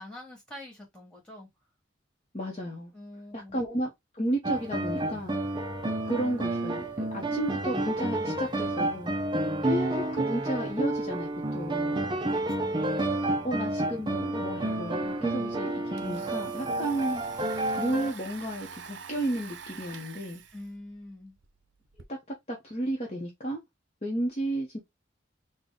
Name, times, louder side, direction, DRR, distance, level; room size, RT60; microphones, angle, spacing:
voice 1, 0.0-1.5 2.9-3.6 12.3-12.8 15.3-15.4 20.5-21.3, left 1 dB, 5° left, 1.6 m, -45 dB
voice 2, 2.3-2.9 3.3-5.3 6.1-9.1 9.6-12.0 13.4-17.2 17.8-20.4 22.1-22.2 22.5-23.6 24.0-24.8, right 1 dB, 30° left, 0.8 m, -33 dB
sound 1, 4.4-18.1, right 1 dB, 25° right, 0.5 m, -30 dB
Domestic sounds home sounds, 15.0-15.1 15.4-22.0, right 6 dB, 70° right, 0.6 m, -47 dB
3.9 x 2.2 x 3.6 m
head